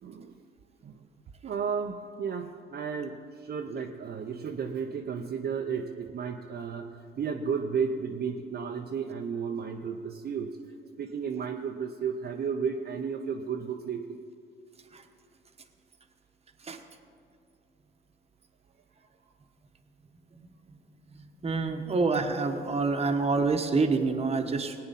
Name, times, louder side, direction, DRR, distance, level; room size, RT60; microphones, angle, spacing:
voice 1, 0.0-0.3 0.8-1.1 1.4-10.6 11.0-14.2, right 6 dB, 50° right, 2 dB, 0.7 m, -33 dB
voice 2, 21.4-24.7, right 4 dB, 30° right, 6 dB, 1.2 m, -27 dB
18.0 x 9.6 x 4.2 m, 2.5 s
cardioid pair, 90°, 20 cm